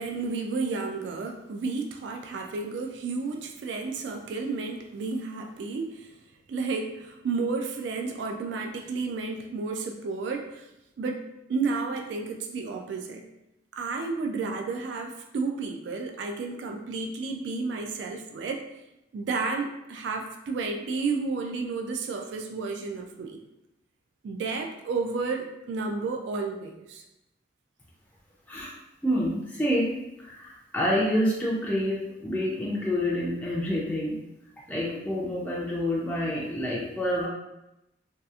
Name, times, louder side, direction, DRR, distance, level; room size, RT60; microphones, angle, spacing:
voice 1, 0.0-6.1 6.5-10.7 11.0-13.2 13.7-18.7 19.1-23.4 24.2-27.0, right 4 dB, 70° right, 3 dB, 0.3 m, -32 dB
voice 2, 29.0-34.2 34.7-37.3, equal, 10° left, -6 dB, 0.3 m, -28 dB
2.7 x 2.3 x 2.3 m, 0.90 s
head